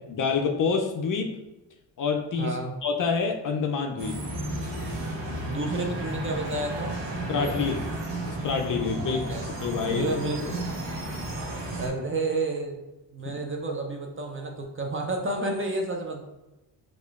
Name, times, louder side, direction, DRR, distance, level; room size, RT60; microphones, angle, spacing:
voice 1, 0.1-1.4 2.0-4.2 7.3-7.8 8.2-10.1 13.2-13.3, left 5 dB, 45° left, 4 dB, 0.5 m, -27 dB
voice 2, 2.4-2.7 5.4-7.0 7.3-7.7 9.1-9.5 9.8-10.4 11.8-12.8 13.1-16.2, right 2 dB, 25° right, 2 dB, 0.5 m, -30 dB
sound 1, 4.0-11.9, right 1 dB, 60° right, 1.0 m, -33 dB
4.7 x 2.4 x 2.4 m, 0.99 s
cardioid pair, 75°, 48 cm